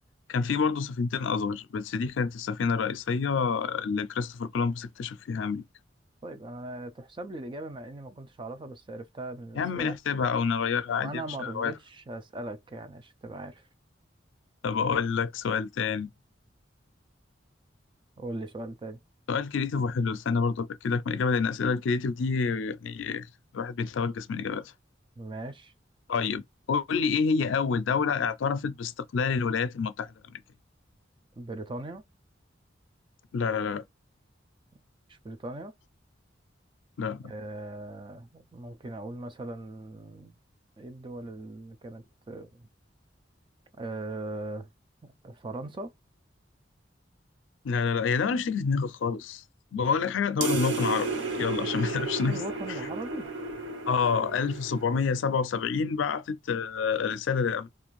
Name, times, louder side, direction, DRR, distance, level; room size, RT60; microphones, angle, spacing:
voice 1, 0.3-5.6 9.5-11.7 14.6-16.1 19.3-23.3 23.5-24.7 26.1-26.4 26.7-30.4 33.3-33.8 37.0-37.3 47.6-49.4 49.7-51.1 51.4-52.4 53.9-57.7, left 5 dB, 90° left, 0.4 m, -28 dB
voice 2, 6.2-10.0 11.0-13.7 18.2-19.0 25.2-25.7 31.4-32.0 35.1-35.7 37.2-40.3 40.8-42.7 43.8-44.7 45.0-45.9 49.8-49.9 52.2-53.3 54.1-54.4, right 2 dB, 25° right, 0.4 m, -39 dB
sound 1, 50.4-55.3, right 3 dB, 75° right, 0.8 m, -33 dB
2.5 x 2.4 x 3.0 m
head